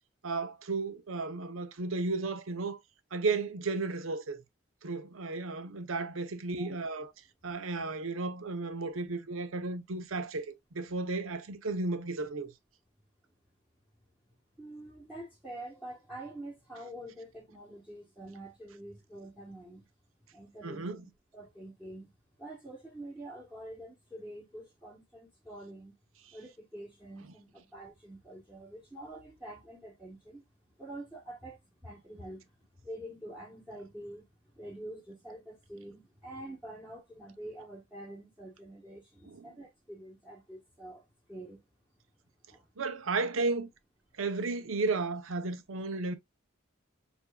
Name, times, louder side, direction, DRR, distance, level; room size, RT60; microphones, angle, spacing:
voice 1, 0.2-2.8 3.1-4.4 4.8-7.1 7.4-12.5 20.6-21.1 39.3-39.5 42.8-43.7 44.2-46.2, right 3 dB, 90° right, 0.8 m, -34 dB
voice 2, 14.6-19.9 20.3-22.1 22.4-25.9 26.3-30.4 30.8-41.6 42.5-42.6, right 1 dB, 5° right, 1.1 m, -46 dB
7.0 x 2.6 x 2.3 m
head